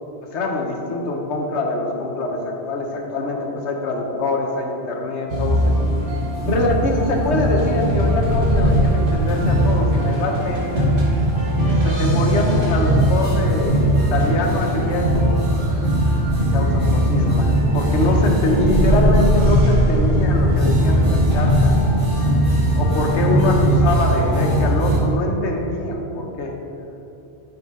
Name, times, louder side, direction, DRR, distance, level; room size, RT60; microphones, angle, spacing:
voice 1, 0.3-5.7 6.4-10.9 11.6-15.4 16.4-21.7 22.7-26.5, left 2 dB, 85° left, 2 dB, 1.1 m, -24 dB
sound 1, 5.3-25.0, right 1 dB, 55° right, 1.4 m, -18 dB
7.9 x 4.2 x 3.6 m, 2.8 s
omnidirectional pair, 1.1 m